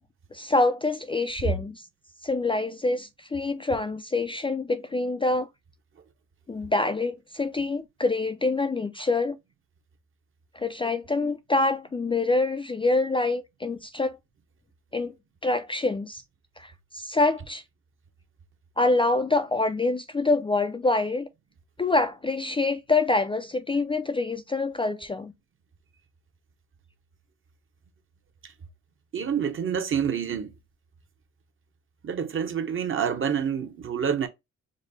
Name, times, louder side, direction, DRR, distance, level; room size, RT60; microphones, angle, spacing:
voice 1, 0.3-1.8 2.2-5.5 6.5-9.4 10.5-14.2 14.9-15.1 15.4-16.2 16.6-17.6 18.8-21.3 21.8-25.3, left 3 dB, 15° left, 0.4 m, -26 dB
voice 2, 29.1-30.5 32.0-34.3, right 7 dB, 40° right, 0.9 m, -27 dB
5.1 x 2.1 x 3.9 m
cardioid pair, 90°, 30 cm